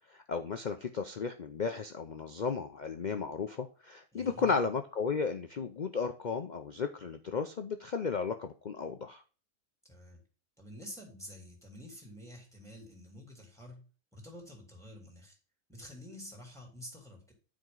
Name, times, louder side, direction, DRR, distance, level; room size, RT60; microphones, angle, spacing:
voice 1, 0.1-9.2, left 5 dB, 75° left, 7 dB, 0.4 m, -34 dB
voice 2, 4.1-4.5 9.9-10.2 10.6-13.8 14.1-15.4 15.7-17.3, equal, ahead, 0 dB, 2.5 m, -49 dB
9.3 x 5.1 x 3.8 m, 0.36 s
omnidirectional pair, 1.6 m